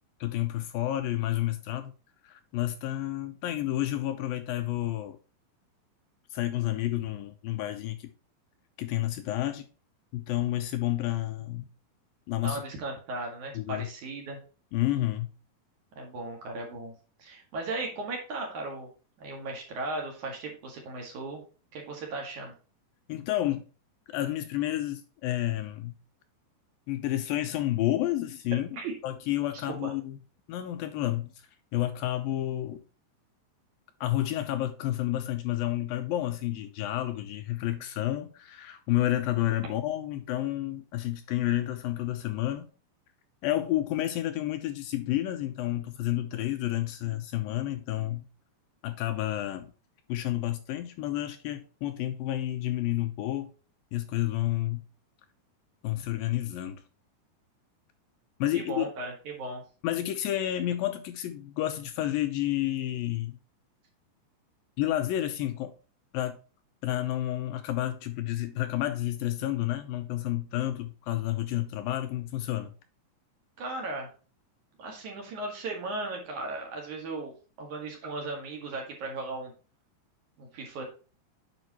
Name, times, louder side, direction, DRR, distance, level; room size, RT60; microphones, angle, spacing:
voice 1, 0.2-1.9 2.2-5.2 6.3-8.1 8.8-9.6 10.1-11.6 12.3-12.6 13.5-13.9 14.7-15.3 23.1-23.6 24.1-25.9 26.9-30.2 30.5-31.3 31.7-32.8 34.0-42.7 43.4-48.3 48.8-49.7 50.1-53.5 53.9-54.8 55.8-56.8 58.4-58.9 59.8-63.4 64.8-65.7 66.1-66.4 66.8-72.7, left 14 dB, 80° left, 2.3 m, -30 dB
voice 2, 12.4-14.4 16.0-16.9 17.2-18.9 19.2-21.4 21.7-22.5 28.7-28.9 29.5-29.9 58.5-59.6 73.6-74.1 74.8-77.3 77.6-79.5 80.4-80.8, right 2 dB, 55° right, 3.1 m, -36 dB
9.2 x 5.2 x 2.9 m
omnidirectional pair, 4.4 m